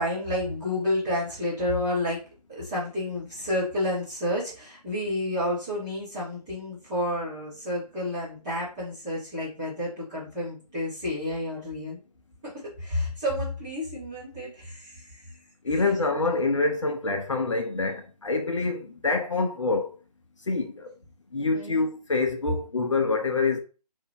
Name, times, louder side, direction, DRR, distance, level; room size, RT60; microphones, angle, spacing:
voice 1, 0.0-2.2 2.5-12.0 12.4-12.5 12.8-15.0 15.7-15.8 21.5-21.9, left 1 dB, 5° right, 0.5 m, -30 dB
voice 2, 15.6-19.9 20.5-20.9 21.3-23.6, left 3 dB, 50° left, 0.4 m, -26 dB
2.6 x 2.1 x 3.3 m
figure-of-eight pair, 150°, 21 cm